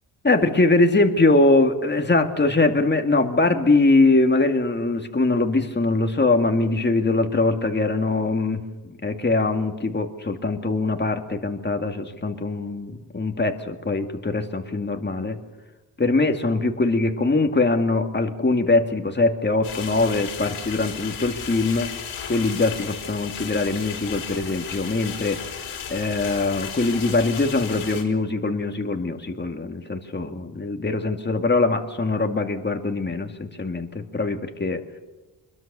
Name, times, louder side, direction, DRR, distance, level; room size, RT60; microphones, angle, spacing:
voice 1, 0.2-15.4 16.0-21.9 22.3-25.4 25.9-34.8, left 3 dB, 20° left, 5 dB, 2.3 m, -22 dB
sound 1, 19.6-28.0, left 7 dB, 80° left, 4.7 m, -35 dB
24.5 x 22.5 x 6.9 m, 1.1 s
cardioid pair, 75°, 49 cm